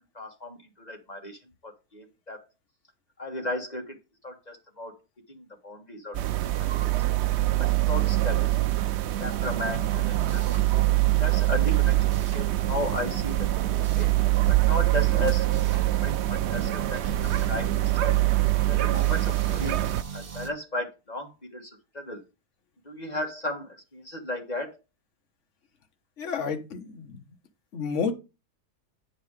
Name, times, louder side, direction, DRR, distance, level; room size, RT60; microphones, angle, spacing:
voice 1, 0.1-2.5 3.2-4.0 4.2-5.0 5.3-6.2 6.6-6.9 7.6-8.7 9.2-10.7 11.2-14.1 14.5-18.2 18.7-19.7 20.1-22.2 22.8-24.8, left 1 dB, 25° left, 2 dB, 1.9 m, -35 dB
sound 1, 6.1-20.0, right 16 dB, 80° right, 0.6 m, -24 dB
sound 2, 9.6-20.5, right 7 dB, 40° right, 1.2 m, -38 dB
voice 2, 26.2-27.2 27.7-28.1, left 6 dB, 50° left, 6 dB, 1.5 m, -30 dB
9.3 x 4.7 x 4.9 m, 0.27 s
omnidirectional pair, 1.7 m